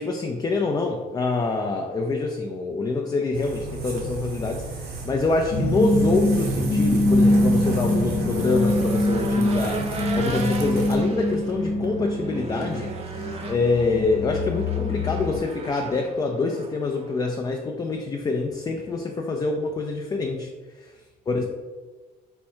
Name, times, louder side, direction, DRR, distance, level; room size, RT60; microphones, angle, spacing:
voice 1, 0.0-20.5 20.8-20.9 21.3-21.5, left 3 dB, 25° left, 2 dB, 0.4 m, -26 dB
sound 1, 3.3-11.0, right 3 dB, 65° right, 0.9 m, -34 dB
sound 2, 5.5-15.4, left 1 dB, 75° left, 0.9 m, -24 dB
Race car auto racing / Engine, 7.1-17.2, right 3 dB, 40° right, 0.6 m, -37 dB
4.3 x 2.3 x 4.4 m, 1.3 s
cardioid pair, 110°, 17 cm